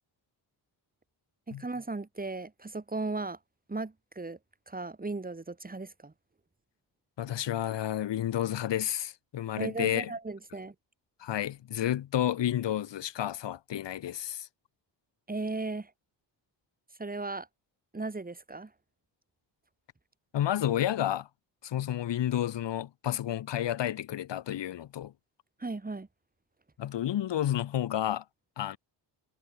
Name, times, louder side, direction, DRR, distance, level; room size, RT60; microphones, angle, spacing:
voice 1, 1.5-3.4 3.7-4.4 4.7-6.1 9.6-10.7 15.3-15.9 17.0-17.5 17.9-18.7 25.6-26.1, right 3 dB, 20° right, 6.7 m, -36 dB
voice 2, 7.2-10.1 11.2-14.5 20.3-21.3 21.6-25.1 26.8-28.2 28.6-28.8, left 11 dB, 90° left, 4.4 m, -31 dB
cardioid pair, 110°, 42 cm